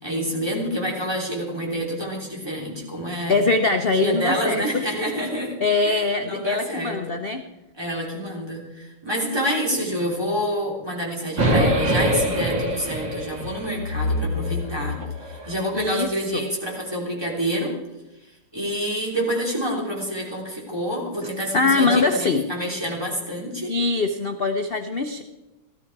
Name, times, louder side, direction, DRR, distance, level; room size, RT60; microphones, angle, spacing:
voice 1, 0.0-3.4 3.9-5.5 5.8-7.1 7.8-14.9 15.2-17.7 18.5-23.7, equal, 10° right, -2 dB, 3.3 m, -27 dB
voice 2, 3.3-4.8 5.6-7.4 11.5-11.8 15.7-16.4 21.5-22.4 23.7-25.2, left 3 dB, 80° left, 6 dB, 0.5 m, -22 dB
sound 1, 11.4-15.6, equal, 65° right, 3.0 m, -24 dB
17.5 x 13.0 x 4.7 m, 1.0 s
omnidirectional pair, 2.2 m